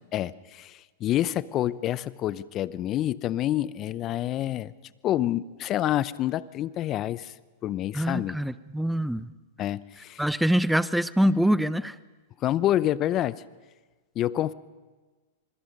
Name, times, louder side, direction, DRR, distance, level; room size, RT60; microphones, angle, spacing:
voice 1, 0.1-4.7 5.0-7.3 7.6-8.4 9.6-10.2 12.4-13.4 14.2-14.5, left 13 dB, 35° left, 18 dB, 0.7 m, -27 dB
voice 2, 7.9-9.3 10.2-12.0, equal, ahead, 16 dB, 0.7 m, -24 dB
26.5 x 21.5 x 5.4 m, 1.3 s
hypercardioid pair, 110°, 0 cm